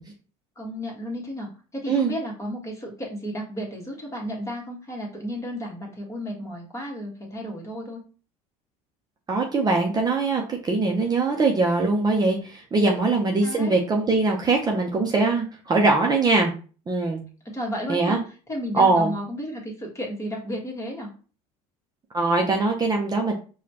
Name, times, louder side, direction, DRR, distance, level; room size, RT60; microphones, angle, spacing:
voice 1, 0.5-8.0 13.0-13.1 13.4-13.7 17.4-21.1, equal, 20° left, -1 dB, 1.5 m, -33 dB
voice 2, 9.3-16.5 16.9-17.2 17.9-18.2 18.7-19.1 22.1-23.3, right 3 dB, 25° right, 1 dB, 0.7 m, -22 dB
4.8 x 2.4 x 2.9 m, 0.37 s
supercardioid pair, 100°, 15 cm